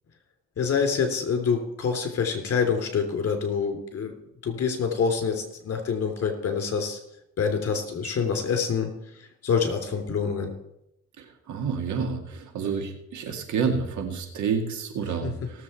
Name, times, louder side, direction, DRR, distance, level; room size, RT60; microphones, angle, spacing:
voice 1, 0.6-4.1 4.4-7.0 7.4-8.9 9.4-10.5 15.2-15.3, left 6 dB, 50° left, 4 dB, 3.3 m, -26 dB
voice 2, 11.2-15.6, right 6 dB, 70° right, 4 dB, 2.2 m, -29 dB
18.0 x 7.4 x 4.4 m, 0.81 s
cardioid pair, 90°, 30 cm